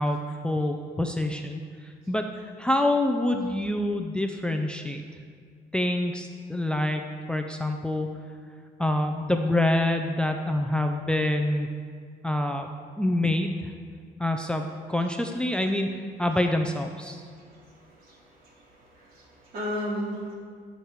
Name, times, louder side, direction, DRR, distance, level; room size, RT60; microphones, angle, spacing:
voice 1, 0.0-5.0 5.7-8.1 8.8-11.7 12.2-12.7 13.0-13.7 14.2-17.2, left 1 dB, 5° left, 4 dB, 0.6 m, -26 dB
voice 2, 19.0-20.3, equal, 60° right, -3 dB, 3.1 m, -33 dB
13.0 x 6.6 x 4.7 m, 2.1 s
cardioid pair, 110°, 17 cm